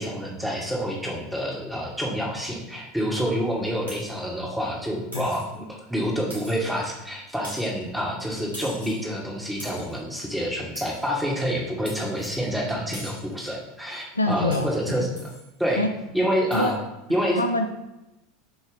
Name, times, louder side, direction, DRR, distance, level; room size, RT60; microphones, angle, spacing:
voice 1, 0.0-15.1 15.6-15.8 16.1-16.7 17.1-17.4, equal, 5° right, -2 dB, 1.5 m, -27 dB
sound 1, 3.9-4.2 5.1-5.5 6.3-6.8 7.4-7.8 8.5-9.1 9.6-10.0 10.8-11.1 11.9-12.4 12.9-13.3 14.5-14.8 15.2-15.5 16.5-16.7, right 1 dB, 80° right, 2.1 m, -42 dB
voice 2, 14.1-14.7 15.8-15.9 16.5-16.7 17.3-17.7, left 1 dB, 85° left, 6 dB, 0.4 m, -24 dB
7.0 x 2.8 x 4.9 m, 0.96 s
figure-of-eight pair, 80°, 0 cm